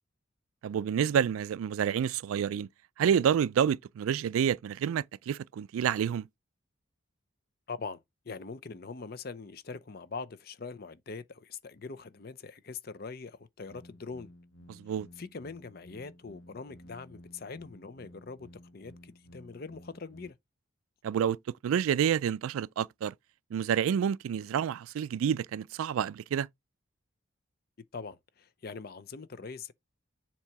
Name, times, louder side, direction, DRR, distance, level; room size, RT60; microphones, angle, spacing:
voice 1, 0.6-2.7 3.0-6.3 14.8-15.1 21.0-21.4 21.6-23.1 23.5-26.5, right 8 dB, 85° right, 0.3 m, -28 dB
voice 2, 7.7-14.3 14.9-20.4 27.9-29.7, left 4 dB, 50° left, 0.6 m, -43 dB
sound 1, 13.6-20.3, equal, 80° left, 1.1 m, -54 dB
7.3 x 3.0 x 4.7 m
head